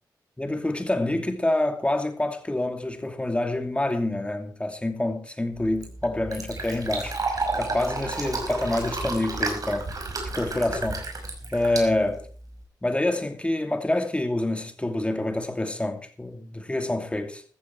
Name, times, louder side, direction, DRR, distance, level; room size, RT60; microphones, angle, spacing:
voice 1, 0.4-7.2 7.6-10.0 10.3-11.1 11.5-12.3 12.8-17.4, left 1 dB, 15° left, 2.7 m, -27 dB
Fill (with liquid), 5.5-12.6, right 3 dB, 55° right, 5.6 m, -32 dB
14.5 x 14.0 x 4.6 m
cardioid pair, 75°, 8 cm